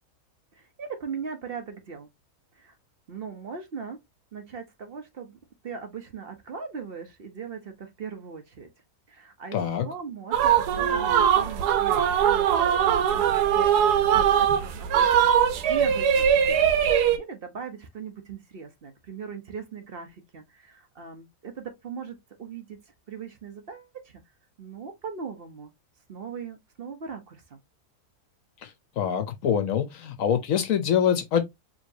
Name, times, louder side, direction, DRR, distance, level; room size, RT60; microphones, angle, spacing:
voice 1, 0.5-2.1 2.6-2.8 3.1-4.0 4.3-8.7 9.1-12.5 13.1-22.8 23.1-24.2 24.6-25.7 26.1-27.6, right 6 dB, 50° right, 0.8 m, -39 dB
voice 2, 9.5-9.9 29.0-31.4, left 8 dB, 65° left, 1.0 m, -24 dB
sound 1, 10.3-17.2, right 9 dB, 85° right, 1.2 m, -21 dB
4.8 x 2.9 x 2.6 m
omnidirectional pair, 1.7 m